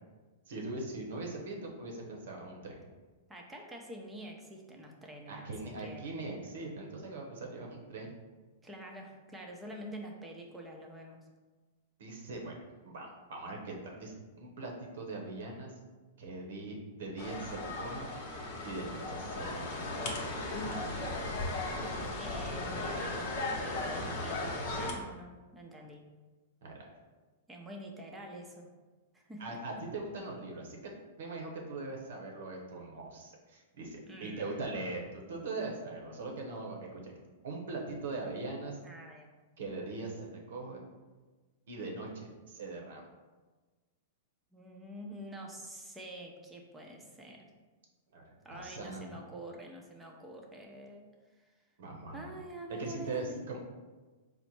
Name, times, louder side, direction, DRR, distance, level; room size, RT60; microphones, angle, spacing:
voice 1, 0.5-2.9 5.3-8.1 12.0-12.6 12.8-15.7 16.2-18.1 18.6-19.9 26.6-26.9 29.4-30.9 31.2-37.1 37.4-38.8 39.6-40.8 41.7-43.0 48.1-49.1 51.8-52.3 52.8-53.6, right 2 dB, 75° right, 0 dB, 0.9 m, -41 dB
voice 2, 3.3-5.5 5.8-6.1 8.6-11.2 22.2-26.1 27.5-28.7 29.1-29.6 34.1-34.7 38.8-39.3 44.5-47.5 48.4-51.1 51.4-51.5 52.1-53.4, right 1 dB, 10° right, 0 dB, 0.6 m, -46 dB
sound 1, 17.2-24.9, left 2 dB, 50° left, 0.8 m, -36 dB
4.1 x 2.0 x 4.5 m, 1.3 s
hypercardioid pair, 125°, 0 cm